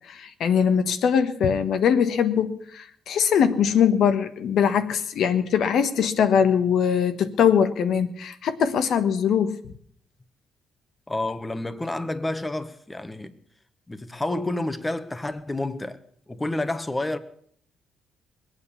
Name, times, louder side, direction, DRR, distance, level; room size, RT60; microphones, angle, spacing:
voice 1, 0.1-9.6, left 7 dB, 70° left, 1.3 m, -22 dB
voice 2, 11.1-13.4 13.9-16.0 16.3-17.2, left 2 dB, 15° left, 1.2 m, -29 dB
21.0 x 8.8 x 7.0 m
cardioid pair, 90°, 0 cm